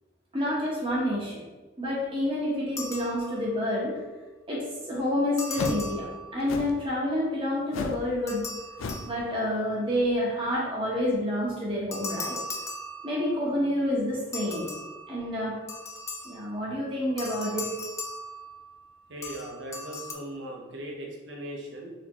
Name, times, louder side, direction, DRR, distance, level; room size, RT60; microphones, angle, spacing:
voice 1, 0.3-1.4 1.8-3.9 4.5-6.1 6.3-8.4 9.0-12.3 13.0-14.7 15.1-15.6 16.2-17.8, left 1 dB, 25° right, -5 dB, 1.0 m, -28 dB
sound 1, 2.8-3.7 5.4-6.7 8.3-9.7 11.9-13.5 14.3-16.6 17.2-18.9 19.2-20.1, left 1 dB, 15° left, 0.3 m, -39 dB
sound 2, 5.5-5.9 6.5-6.8 7.7-8.1 8.3-8.5 8.8-9.1, left 3 dB, 85° left, 0.4 m, -33 dB
voice 2, 19.1-21.9, right 1 dB, 65° right, -1 dB, 0.9 m, -39 dB
4.3 x 3.6 x 3.0 m, 1.2 s
head